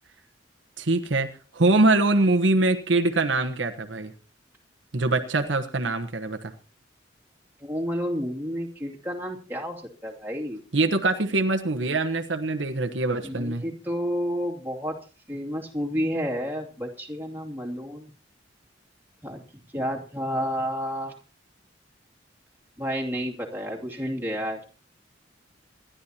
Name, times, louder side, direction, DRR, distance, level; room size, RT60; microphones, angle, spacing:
voice 1, 0.8-1.3 1.5-4.1 4.9-6.5 10.7-13.6, right 2 dB, 75° right, 6 dB, 1.2 m, -23 dB
voice 2, 7.6-10.6 13.2-15.0 15.3-18.1 19.2-19.4 19.7-21.1 22.8-24.6, equal, 10° right, -2 dB, 2.6 m, -30 dB
26.5 x 11.5 x 2.9 m, 0.35 s
head